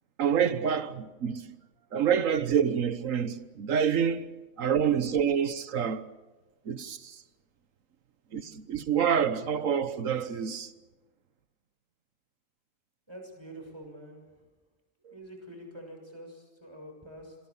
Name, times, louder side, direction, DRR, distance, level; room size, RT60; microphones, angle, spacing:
voice 1, 0.2-1.5 1.9-4.3 4.6-6.1 6.7-7.2 8.3-10.7 15.1-15.2, right 8 dB, 80° right, 1.5 m, -27 dB
voice 2, 13.1-14.4 15.1-17.4, right 1 dB, 20° right, 6.7 m, -46 dB
27.0 x 23.0 x 7.1 m
omnidirectional pair, 1.3 m